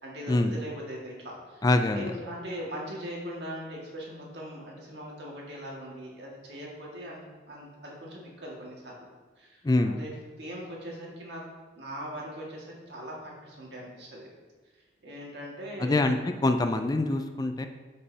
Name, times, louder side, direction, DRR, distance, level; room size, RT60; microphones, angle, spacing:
voice 1, 0.0-1.6 1.9-9.1 9.4-10.1 10.4-11.4 11.8-14.3 15.0-16.0, equal, 75° right, -3 dB, 1.8 m, -40 dB
voice 2, 1.6-2.1 9.6-10.0 15.8-17.7, left 2 dB, 20° left, 7 dB, 0.3 m, -25 dB
9.7 x 5.3 x 2.8 m, 1.3 s
head